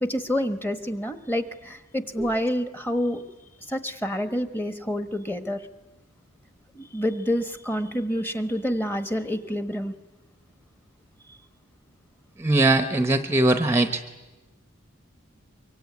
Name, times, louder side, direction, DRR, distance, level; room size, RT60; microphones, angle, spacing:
voice 1, 0.0-3.2 3.7-5.6 6.7-9.9 11.3-11.4, equal, 10° left, 10 dB, 1.2 m, -28 dB
voice 2, 12.4-14.0, right 2 dB, 10° right, 9 dB, 0.8 m, -21 dB
24.5 x 23.5 x 9.4 m, 1.2 s
head